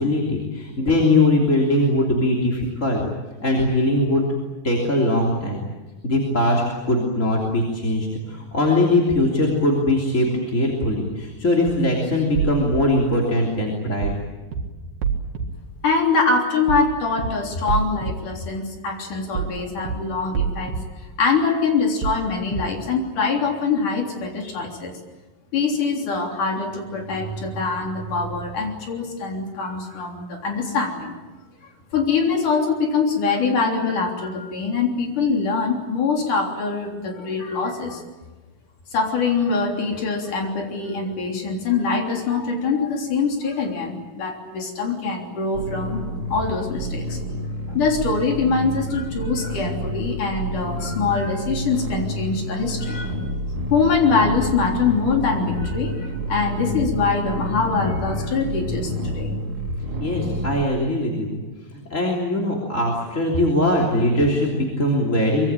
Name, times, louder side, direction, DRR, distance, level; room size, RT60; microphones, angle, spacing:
voice 1, 0.0-3.0 3.4-4.4 4.6-5.6 6.0-14.1 60.0-61.4 61.7-65.5, left 1 dB, 20° left, -2 dB, 3.2 m, -21 dB
sound 1, 12.4-12.8 14.0-14.2 14.5-14.6 15.0-15.5 16.7-16.9 17.2-17.3 17.7-18.1 19.4-19.6 19.9-20.0 20.3-20.8 22.0-22.2 22.5-22.6, right 7 dB, 70° right, 3.7 m, -25 dB
voice 2, 15.8-20.7 21.2-24.9 25.5-31.1 31.9-38.0 38.9-46.0 46.3-47.2 47.7-53.1 53.7-59.4, left 4 dB, 60° left, 2 dB, 5.0 m, -23 dB
sound 2, 45.5-60.6, equal, 35° right, 4.7 m, -29 dB
24.5 x 23.0 x 9.0 m, 1.2 s
omnidirectional pair, 4.2 m